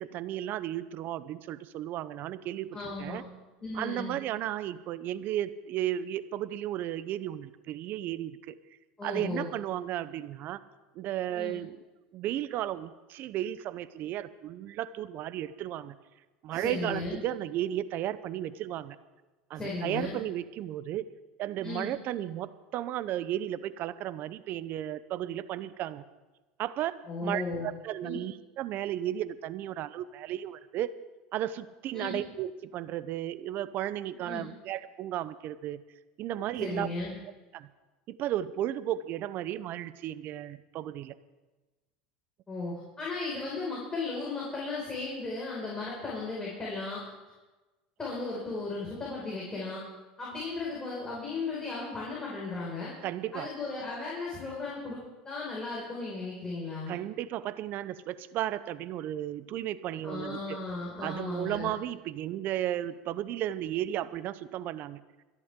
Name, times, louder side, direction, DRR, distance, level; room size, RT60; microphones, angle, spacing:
voice 1, 0.0-3.2 3.7-8.6 9.0-10.6 10.9-11.7 12.1-15.9 16.4-19.0 19.5-21.1 21.4-26.0 26.6-30.9 31.3-35.8 36.2-36.9 37.5-37.7 38.1-41.2 53.0-53.5 56.9-60.6 61.0-65.0, right 12 dB, 50° right, 15 dB, 0.7 m, -34 dB
voice 2, 2.7-3.2 3.6-4.2 9.0-9.5 11.3-11.5 16.5-17.2 19.5-20.2 21.6-21.9 27.1-27.7 28.0-28.2 31.9-32.2 34.2-34.4 36.6-37.1 42.5-47.0 48.0-49.8 50.2-52.9 53.3-55.0 55.2-57.0 60.0-61.7, left 3 dB, 15° left, -6 dB, 5.5 m, -36 dB
26.0 x 11.0 x 3.7 m, 1.2 s
supercardioid pair, 100°, 4 cm